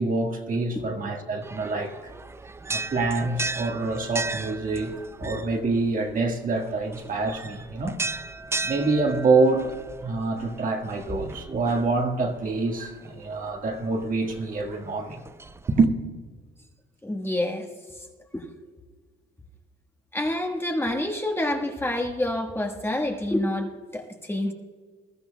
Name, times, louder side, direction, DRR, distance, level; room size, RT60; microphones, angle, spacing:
voice 1, 0.0-2.1 2.7-8.0 8.6-15.2 15.7-15.9, right 3 dB, 45° right, 1.7 m, -26 dB
sound 1, 1.4-15.8, right 3 dB, 15° right, 0.4 m, -37 dB
voice 2, 17.0-17.7 18.3-18.4 20.1-24.5, left 1 dB, 10° left, 1.5 m, -27 dB
21.0 x 13.0 x 2.3 m
cardioid pair, 100°, 20 cm